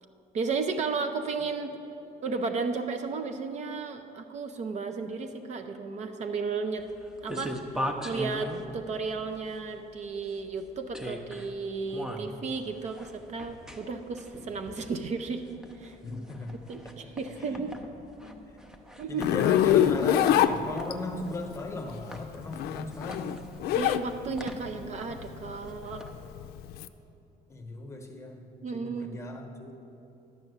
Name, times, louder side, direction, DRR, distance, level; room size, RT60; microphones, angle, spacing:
voice 1, 0.3-1.8 2.2-6.9 7.2-15.4 15.8-16.0 16.7-17.7 19.0-19.3 23.7-26.0 28.6-29.2, right 4 dB, 45° right, 6 dB, 0.6 m, -34 dB
sound 1, 6.8-26.5, equal, 5° right, 0.7 m, -41 dB
voice 2, 16.0-16.5 16.8-17.1 17.5-17.7 18.2-18.4 19.1-23.3 27.5-28.4 28.7-29.7, left 2 dB, 15° left, 3 dB, 1.0 m, -37 dB
Zipper (clothing), 19.2-21.2 22.4-24.1 24.4-26.9, left 11 dB, 75° left, 0.4 m, -24 dB
11.0 x 5.9 x 8.0 m, 2.8 s
cardioid pair, 140°, 16 cm